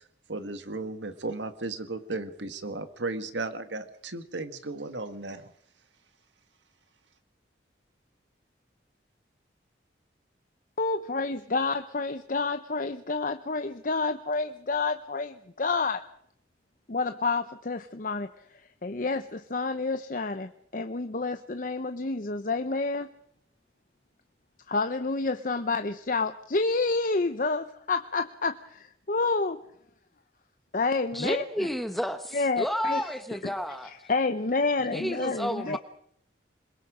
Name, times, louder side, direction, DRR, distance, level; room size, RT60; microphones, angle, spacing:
voice 1, 0.3-5.5, right 3 dB, 90° right, 9 dB, 1.8 m, -35 dB
voice 2, 10.8-16.0 16.9-23.1 24.7-29.6 30.7-31.7 32.3-33.1 33.4-33.6 33.8-35.8, left 3 dB, 50° left, 8 dB, 0.8 m, -29 dB
voice 3, 31.1-32.2 32.6-33.9 34.9-35.8, equal, ahead, 9 dB, 1.1 m, -30 dB
26.5 x 22.0 x 5.0 m, 0.67 s
head